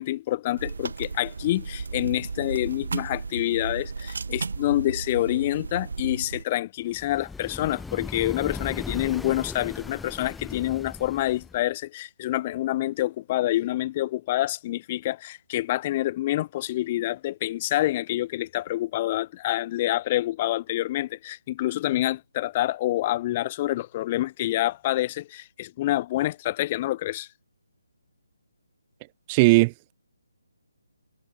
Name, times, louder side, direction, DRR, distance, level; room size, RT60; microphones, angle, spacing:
voice 1, 0.0-27.3, left 15 dB, 25° left, 1.9 m, -27 dB
sound 1, 0.6-6.4, right 4 dB, 65° right, 3.9 m, -34 dB
sound 2, 6.9-11.6, left 4 dB, 5° left, 5.8 m, -38 dB
voice 2, 29.3-29.9, right 25 dB, 20° right, 0.6 m, -18 dB
hypercardioid pair, 165°, 0 cm